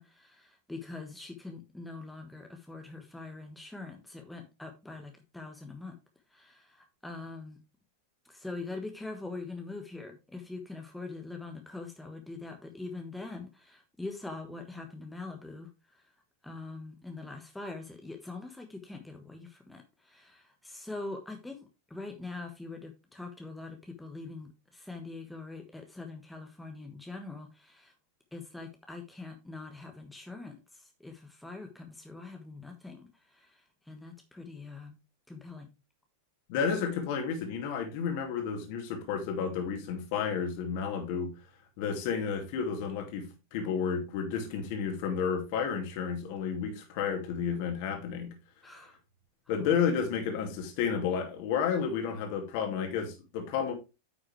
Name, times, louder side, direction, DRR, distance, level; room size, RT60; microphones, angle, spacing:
voice 1, 0.0-6.0 6.3-7.6 8.2-16.1 16.4-27.9 28.3-35.0 35.3-35.7 48.6-49.0 49.6-49.8, left 3 dB, 5° left, 1.3 m, -43 dB
voice 2, 36.5-41.3 41.8-48.3 49.5-53.7, left 6 dB, 45° left, 2.4 m, -31 dB
9.1 x 6.3 x 3.3 m
figure-of-eight pair, 90°, 0 cm